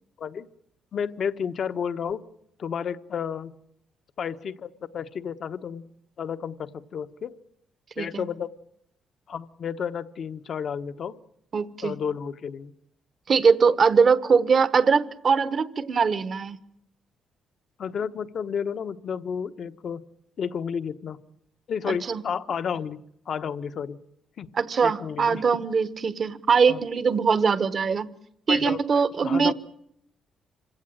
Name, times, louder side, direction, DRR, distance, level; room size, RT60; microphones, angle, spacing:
voice 1, 0.9-2.2 2.6-3.5 4.2-5.8 6.2-7.3 8.0-8.5 9.3-11.2 11.8-12.7 17.8-20.0 20.4-21.2 21.7-23.0 23.3-24.0 24.4-24.5 24.8-25.4 26.7-26.8 28.5-28.8 29.2-29.5, left 7 dB, 55° left, 1.1 m, -31 dB
voice 2, 11.5-11.9 13.3-16.6 21.9-22.2 24.5-28.2 28.5-29.5, right 5 dB, 45° right, 1.3 m, -22 dB
26.5 x 16.5 x 9.1 m
cardioid pair, 90°, 0 cm